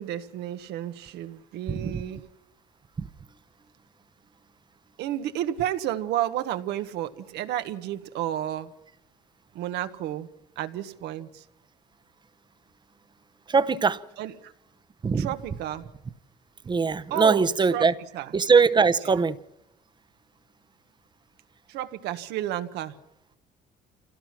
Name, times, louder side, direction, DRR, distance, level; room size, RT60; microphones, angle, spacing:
voice 1, 0.0-2.2 5.0-8.7 9.5-10.3 10.6-11.4 14.2-14.5 15.2-15.9 17.1-17.9 18.1-18.3 19.0-19.2 21.7-23.0, right 12 dB, 85° right, 1.4 m, -31 dB
voice 2, 1.7-2.0 3.0-3.1 13.5-14.0 15.0-15.3 16.7-17.9 18.3-19.4, right 5 dB, 25° right, 0.9 m, -21 dB
27.0 x 17.0 x 5.9 m
cardioid pair, 110°, 17 cm